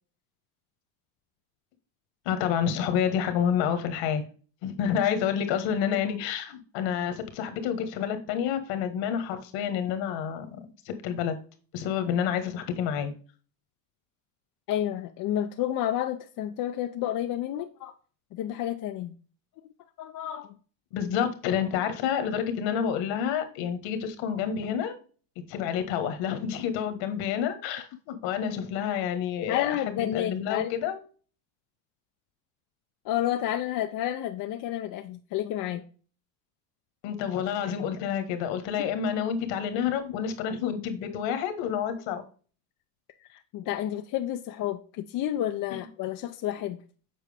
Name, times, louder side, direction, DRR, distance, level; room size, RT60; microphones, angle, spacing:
voice 1, 2.2-4.2 4.6-10.4 10.8-11.4 11.7-13.1 20.9-25.0 25.5-31.0 37.0-42.2, left 8 dB, 60° left, 1.5 m, -29 dB
voice 2, 14.7-18.0 18.3-19.1 20.0-20.6 29.5-30.7 33.0-35.8 43.3-46.8, left 12 dB, 40° left, 0.6 m, -30 dB
7.6 x 4.5 x 3.4 m
supercardioid pair, 115°, 50 cm